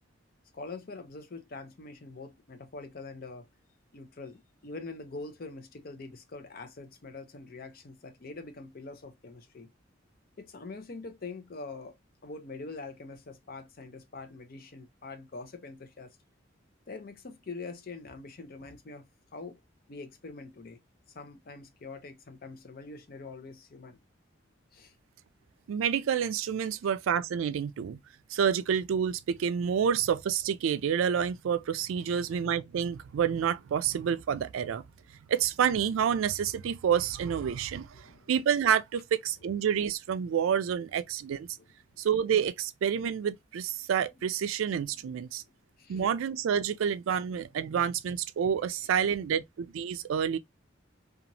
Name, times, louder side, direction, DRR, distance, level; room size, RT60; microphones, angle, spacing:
voice 1, 0.5-3.5 3.9-9.7 10.4-12.0 12.2-16.1 16.9-19.1 19.3-19.6 19.9-20.8 21.1-24.0 24.7-24.9 32.1-32.2 37.9-38.3 41.6-41.7 45.8-46.0 48.8-49.1 50.0-50.1, left 3 dB, 50° left, 0.6 m, -44 dB
voice 2, 25.7-28.0 28.3-34.8 35.3-41.5 42.0-45.4 45.9-50.4, right 8 dB, 90° right, 0.3 m, -28 dB
2.9 x 2.4 x 2.6 m
head